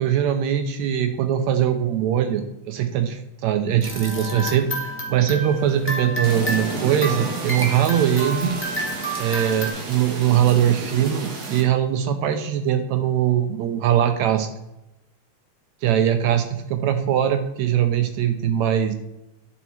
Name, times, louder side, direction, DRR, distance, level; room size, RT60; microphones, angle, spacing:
voice 1, 0.0-8.6 9.2-14.5 15.8-18.9, right 10 dB, 80° right, 8 dB, 1.7 m, -21 dB
sound 1, 3.8-9.7, right 1 dB, 15° left, 0.5 m, -30 dB
sound 2, 6.2-11.6, right 4 dB, 55° right, 1.0 m, -32 dB
11.5 x 4.6 x 4.4 m, 0.89 s
omnidirectional pair, 3.7 m